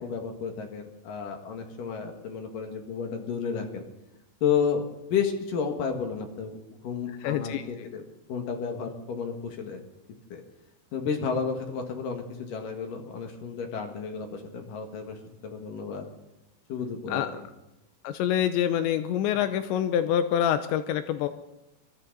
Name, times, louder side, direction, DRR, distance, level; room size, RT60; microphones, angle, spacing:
voice 1, 0.0-3.8 4.4-6.6 6.8-8.0 8.3-9.8 10.3-10.4 10.9-15.2 15.4-16.0 16.7-17.2, left 6 dB, 55° left, 3 dB, 3.0 m, -31 dB
voice 2, 7.2-7.6 17.1-17.3 18.0-21.3, left 10 dB, 85° left, 10 dB, 2.9 m, -26 dB
22.5 x 14.0 x 4.0 m, 0.98 s
omnidirectional pair, 5.3 m